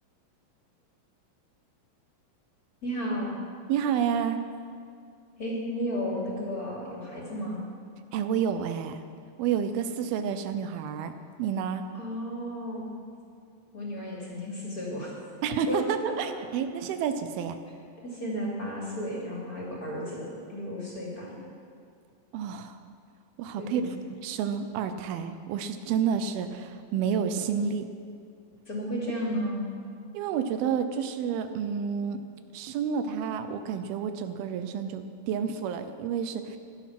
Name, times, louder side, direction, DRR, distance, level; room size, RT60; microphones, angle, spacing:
voice 1, 2.8-3.3 5.4-7.6 11.9-12.9 13.7-15.1 15.7-16.1 18.0-21.4 23.6-23.9 28.7-29.6, equal, 25° left, -4 dB, 2.9 m, -33 dB
voice 2, 3.7-4.4 8.1-9.0 9.4-11.1 11.4-11.8 15.4-17.6 22.3-22.8 23.4-23.8 24.2-27.9 30.1-32.2 32.5-36.6, right 7 dB, 85° right, 9 dB, 2.7 m, -29 dB
16.5 x 11.5 x 5.9 m, 2.4 s
omnidirectional pair, 4.3 m